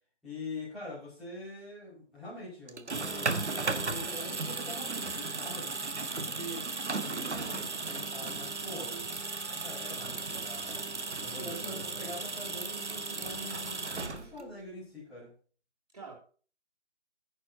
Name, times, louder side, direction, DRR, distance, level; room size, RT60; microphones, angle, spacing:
voice 1, 0.2-15.3, left 1 dB, ahead, -15 dB, 5.9 m, -44 dB
sound 1, 2.7-14.6, right 3 dB, 70° right, 1.6 m, -35 dB
voice 2, 11.2-11.9 15.9-16.1, right 4 dB, 35° right, -4 dB, 3.3 m, -45 dB
19.0 x 10.0 x 2.9 m, 0.40 s
figure-of-eight pair, 175°, 36 cm